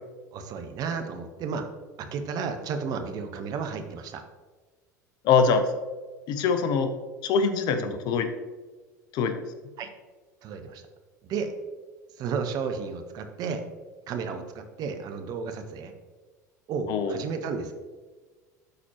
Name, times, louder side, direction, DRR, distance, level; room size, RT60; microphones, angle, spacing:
voice 1, 0.3-1.6 2.0-4.2 7.8-8.0 9.8-9.9 10.4-10.8 11.2-11.5 12.2-13.6 14.1-15.9 16.7-17.7, right 5 dB, 40° right, 6 dB, 0.8 m, -33 dB
voice 2, 5.2-5.7 6.3-6.9 7.2-8.3 9.1-9.4 16.9-17.2, left 5 dB, 45° left, 9 dB, 0.7 m, -23 dB
11.5 x 4.2 x 2.9 m, 1.3 s
figure-of-eight pair, 75°, 10 cm